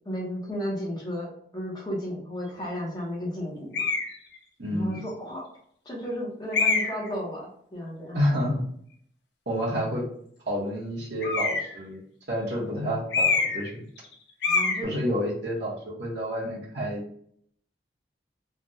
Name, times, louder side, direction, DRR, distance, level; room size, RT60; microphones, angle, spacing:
voice 1, 0.0-3.9 4.7-5.4 5.8-8.2 14.5-14.9, equal, 20° left, -4 dB, 0.8 m, -33 dB
sound 1, 3.7-4.1 4.9-5.0 6.5-7.1 11.2-11.8 13.1-13.7 14.0-14.1 14.4-14.8, left 4 dB, 65° left, 0.6 m, -25 dB
voice 2, 4.6-5.0 8.1-8.6 9.5-10.1 10.5-12.0 12.3-13.8 14.8-17.0, equal, 65° right, -5 dB, 1.1 m, -29 dB
3.3 x 2.2 x 2.7 m, 0.65 s
head